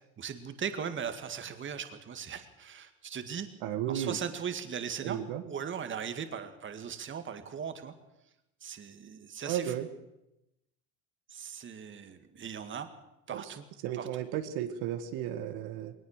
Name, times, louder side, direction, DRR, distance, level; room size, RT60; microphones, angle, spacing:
voice 1, 0.2-3.5 3.9-7.9 8.6-9.7 11.3-12.9 13.3-13.6 13.9-14.1, right 7 dB, 30° right, 8 dB, 2.0 m, -38 dB
voice 2, 3.6-4.2 5.0-5.4 9.5-9.9 13.3-13.6 13.8-15.9, right 10 dB, 70° right, 8 dB, 1.8 m, -34 dB
20.5 x 19.0 x 6.6 m, 0.91 s
supercardioid pair, 115°, 39 cm